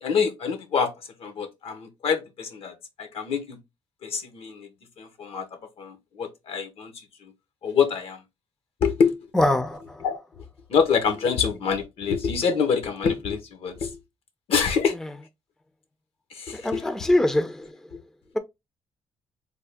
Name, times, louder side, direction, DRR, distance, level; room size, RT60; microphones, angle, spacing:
voice 1, 0.0-0.9 1.2-3.6 4.0-4.7 5.0-5.4 5.8-6.9 7.6-8.2 8.8-9.1 10.0-10.2 10.7-14.0 14.5-14.9 16.3-16.9 17.9-18.0, left 6 dB, 70° left, 0.9 m, -26 dB
voice 2, 9.3-9.8 16.5-17.7, left 1 dB, 5° left, 0.4 m, -22 dB
3.4 x 2.2 x 3.4 m
cardioid pair, 90°, 10 cm